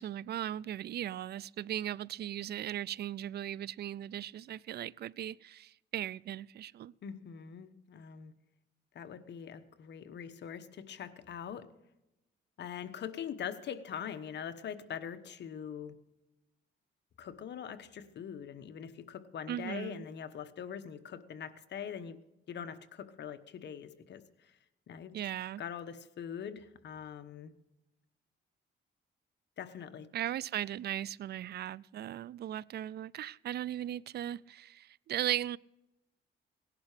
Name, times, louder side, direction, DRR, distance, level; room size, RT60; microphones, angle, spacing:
voice 1, 0.0-6.9 19.5-20.1 25.1-25.6 30.1-35.6, right 11 dB, 55° right, 25 dB, 0.4 m, -37 dB
voice 2, 7.0-8.3 8.9-11.7 12.6-16.0 17.2-22.2 22.5-24.6 24.9-25.1 25.6-27.5 29.6-30.1, left 8 dB, 60° left, 10 dB, 1.2 m, -43 dB
18.0 x 11.5 x 5.0 m, 0.94 s
cardioid pair, 90°, 20 cm